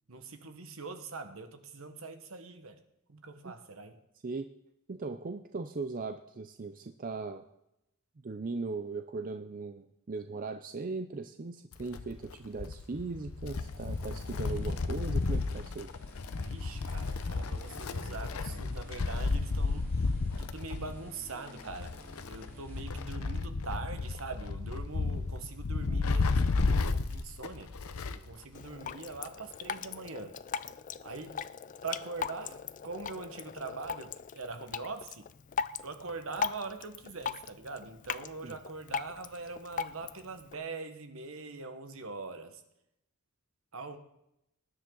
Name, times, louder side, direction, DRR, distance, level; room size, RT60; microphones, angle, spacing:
voice 1, 0.1-2.8 3.1-4.0 16.4-20.1 20.4-21.9 22.3-27.7 28.1-30.4 31.0-31.5 31.8-35.3 35.8-42.6 43.7-44.0, right 3 dB, 65° right, 7 dB, 1.3 m, -43 dB
voice 2, 4.9-7.4 8.2-15.9 38.4-38.6, right 3 dB, 40° right, 7 dB, 0.5 m, -38 dB
Wind, 11.7-28.3 28.6-28.7 29.7-29.8, left 3 dB, 75° left, 0.7 m, -33 dB
sound 1, 13.4-22.8, equal, 10° left, 5.6 m, -54 dB
Drip, 28.5-40.5, left 7 dB, 35° left, 0.4 m, -39 dB
19.5 x 9.8 x 3.9 m, 0.83 s
head